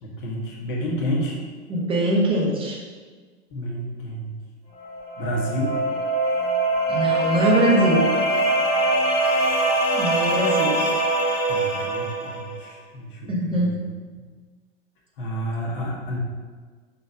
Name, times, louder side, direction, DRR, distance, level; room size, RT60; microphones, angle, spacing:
voice 1, 0.0-1.4 3.5-4.3 5.2-5.8 11.5-13.8 15.2-16.2, equal, 50° left, -2 dB, 1.8 m, -30 dB
voice 2, 1.7-2.8 6.9-8.1 9.9-10.8 13.3-13.8, equal, 15° right, -3 dB, 1.2 m, -22 dB
sound 1, 4.8-12.5, right 2 dB, 20° left, 1.6 m, -23 dB
5.8 x 4.0 x 6.1 m, 1.5 s
figure-of-eight pair, 100°, 33 cm